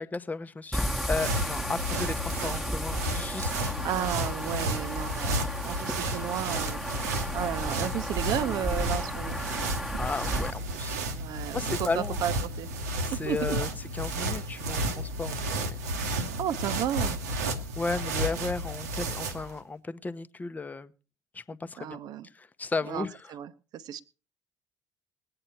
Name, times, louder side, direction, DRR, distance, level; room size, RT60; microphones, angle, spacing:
voice 1, 0.0-3.7 10.0-11.0 11.3-12.2 13.0-15.8 17.8-20.9 21.3-22.0 22.3-23.3, left 3 dB, 20° left, 12 dB, 0.8 m, -34 dB
sound 1, 0.7-10.5, left 1 dB, ahead, 1.2 m, -34 dB
sound 2, 0.8-19.5, right 1 dB, 75° right, 1.1 m, -32 dB
voice 2, 3.8-6.8 7.3-9.4 11.1-12.7 13.1-13.6 16.4-17.2 21.8-22.3 22.9-24.0, right 10 dB, 50° right, 14 dB, 0.8 m, -33 dB
20.0 x 8.9 x 4.4 m, 0.35 s
figure-of-eight pair, 55°, 8 cm